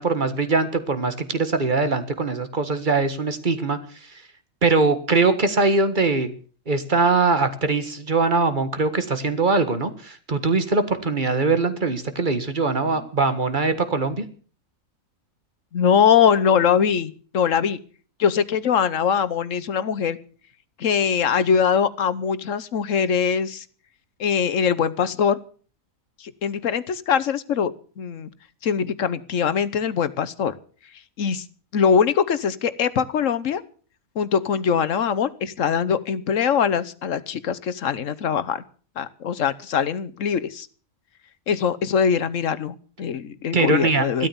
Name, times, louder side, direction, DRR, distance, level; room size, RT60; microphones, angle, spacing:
voice 1, 0.0-3.8 4.1-4.2 4.6-6.3 6.7-14.2 43.5-44.3, right 3 dB, 35° right, 10 dB, 1.7 m, -22 dB
voice 2, 15.7-17.8 18.2-20.2 20.8-23.6 24.2-25.4 26.2-27.7 28.0-28.3 28.6-30.5 31.2-31.4 31.7-33.6 34.2-38.6 39.0-40.7 41.5-44.3, left 7 dB, 65° left, 14 dB, 1.3 m, -22 dB
15.0 x 12.5 x 7.0 m, 0.43 s
omnidirectional pair, 1.4 m